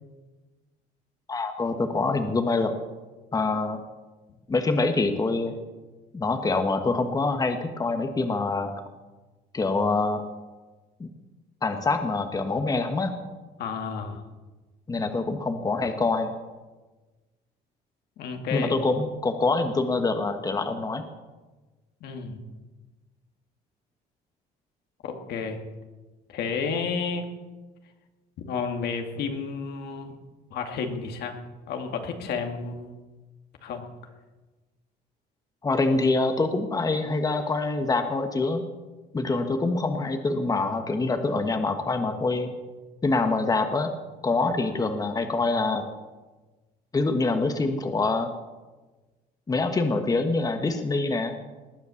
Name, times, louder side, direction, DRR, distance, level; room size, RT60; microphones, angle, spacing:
voice 1, 1.3-2.7 3.3-3.8 4.5-5.5 6.1-8.7 9.5-10.2 11.0-11.1 11.6-13.1 14.9-16.3 18.5-21.0 35.6-38.7 39.1-42.5 43.0-43.9 44.2-45.8 46.9-48.3 49.5-51.3, left 3 dB, 20° left, 7 dB, 1.4 m, -25 dB
voice 2, 13.6-14.2 18.2-18.8 22.0-22.4 25.0-25.6 26.3-27.2 28.5-30.1 30.5-31.4 31.7-32.9 33.6-33.8, left 5 dB, 75° left, 4 dB, 2.3 m, -31 dB
19.5 x 9.4 x 7.1 m, 1.2 s
cardioid pair, 110°, 17 cm